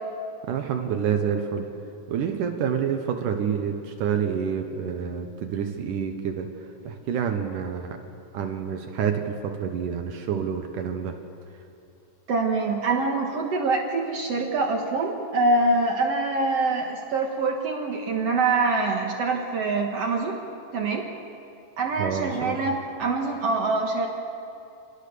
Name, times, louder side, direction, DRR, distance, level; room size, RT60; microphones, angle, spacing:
voice 1, 0.5-1.7 2.1-6.5 6.9-8.0 8.3-11.2 22.0-22.8, right 7 dB, 70° right, 5 dB, 2.5 m, -28 dB
voice 2, 12.3-20.4 20.7-21.1 21.8-24.1, right 3 dB, 55° right, 1 dB, 2.1 m, -25 dB
27.5 x 18.5 x 6.8 m, 2.6 s
omnidirectional pair, 4.0 m